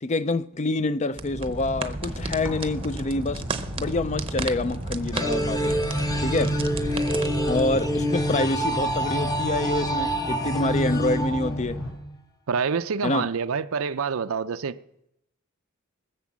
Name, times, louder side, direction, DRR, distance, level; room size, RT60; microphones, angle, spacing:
voice 1, 0.0-3.5 3.8-5.8 6.2-6.6 7.5-11.8 13.0-13.3, left 2 dB, 30° left, 0.4 m, -27 dB
sound 1, 1.1-7.9, right 3 dB, 25° right, 0.7 m, -33 dB
sound 2, 2.0-11.9, equal, 65° left, 5.2 m, -37 dB
sound 3, 5.1-12.1, equal, 15° left, 0.9 m, -26 dB
voice 2, 12.5-14.8, right 5 dB, 70° right, 0.5 m, -27 dB
20.0 x 6.8 x 7.4 m
head